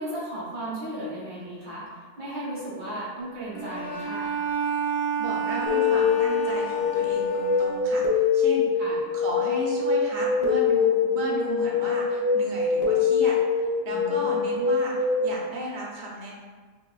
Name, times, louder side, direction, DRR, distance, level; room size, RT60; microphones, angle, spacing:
voice 1, 0.0-1.9 2.2-4.3 8.8-9.0 13.9-14.5, right 1 dB, 85° right, -6 dB, 1.8 m, -35 dB
Bowed string instrument, 3.5-8.1, right 4 dB, 10° right, 0.9 m, -31 dB
voice 2, 5.2-8.7 9.1-14.9 15.2-16.3, right 1 dB, 50° right, -3 dB, 0.6 m, -34 dB
sound 1, 5.7-15.2, left 5 dB, 65° left, 1.1 m, -24 dB
5.4 x 2.2 x 2.3 m, 1.5 s
omnidirectional pair, 1.6 m